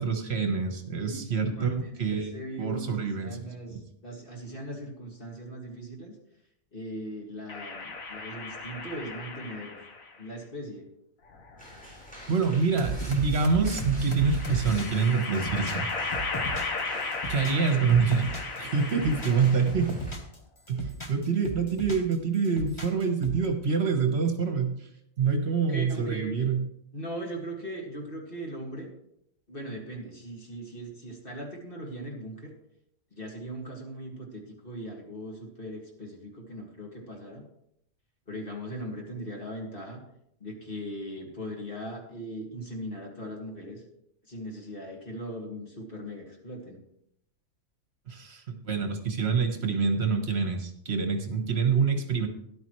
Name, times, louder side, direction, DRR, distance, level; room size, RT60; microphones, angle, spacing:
voice 1, 0.0-2.3 2.6-3.4 12.3-15.9 16.6-16.8 17.3-18.3 18.6-19.9 20.7-24.7 25.2-26.6 48.1-52.3, right 5 dB, 50° right, 5 dB, 1.5 m, -26 dB
voice 2, 1.0-6.1 6.7-9.8 10.2-10.9 25.6-26.5 26.9-28.9 29.5-32.5 33.1-37.4 38.3-40.0 40.4-43.8 44.3-46.8, equal, 40° left, 0 dB, 2.4 m, -39 dB
sound 1, 7.5-10.1 11.3-12.3 13.9-19.9, left 4 dB, 85° left, 1.8 m, -36 dB
sound 2, 11.6-20.1, equal, 5° left, 4.4 m, -48 dB
sound 3, 12.8-16.8 17.1-18.6 18.9-20.4 20.7-22.1 22.4-23.5, right 2 dB, 20° left, 1.3 m, -35 dB
13.0 x 11.0 x 3.2 m, 0.75 s
omnidirectional pair, 1.4 m